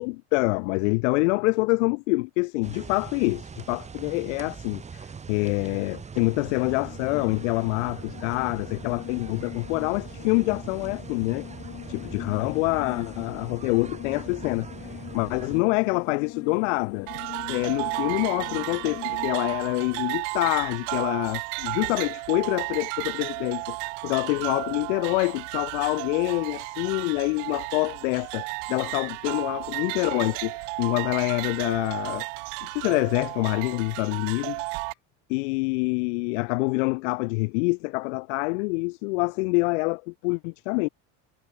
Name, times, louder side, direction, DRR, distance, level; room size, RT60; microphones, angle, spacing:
voice 1, 0.0-11.5 11.9-14.7 15.1-17.1 17.5-32.3 32.6-34.6 35.3-40.9, left 28 dB, 80° left, 1.4 m, -26 dB
sound 1, 2.6-15.6, right 6 dB, 20° right, 2.3 m, -41 dB
sound 2, 6.5-19.3, left 14 dB, 40° left, 2.0 m, -42 dB
sound 3, 17.1-34.9, right 40 dB or more, 70° right, 0.7 m, -33 dB
cardioid pair, 140°, 36 cm